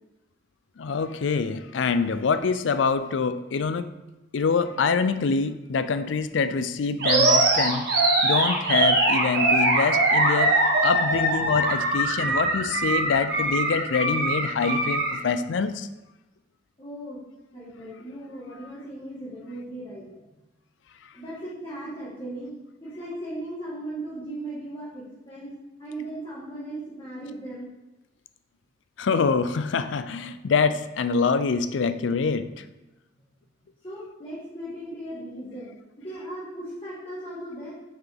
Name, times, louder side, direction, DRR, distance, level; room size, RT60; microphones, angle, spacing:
voice 1, 0.8-3.9 4.3-7.9 8.2-10.6 10.8-15.9 18.6-18.7 29.0-32.5, left 5 dB, 80° left, 12 dB, 0.4 m, -25 dB
Animal, 7.0-15.2, right 2 dB, 55° right, 1.5 m, -22 dB
voice 2, 16.8-17.2 17.5-20.0 21.1-22.5 22.8-25.5 25.8-27.7 33.8-35.7 36.0-37.7, right 1 dB, 25° left, -10 dB, 1.7 m, -37 dB
5.8 x 5.7 x 3.4 m, 1.0 s
head